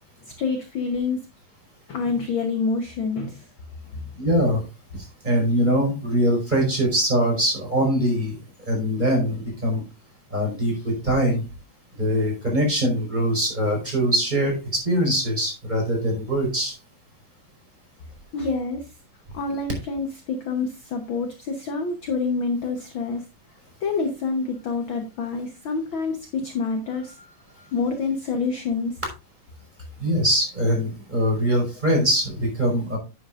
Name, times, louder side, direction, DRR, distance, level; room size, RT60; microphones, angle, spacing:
voice 1, 0.4-1.2 1.9-3.5 3.9-4.0 18.3-18.9 19.3-23.2 23.8-29.0, left 4 dB, 55° left, 6 dB, 1.5 m, -27 dB
voice 2, 4.2-4.6 5.2-8.4 8.7-9.8 10.3-11.4 12.0-16.8 30.0-33.0, equal, 15° right, -1 dB, 5.3 m, -22 dB
10.5 x 10.0 x 2.5 m, 0.28 s
omnidirectional pair, 3.3 m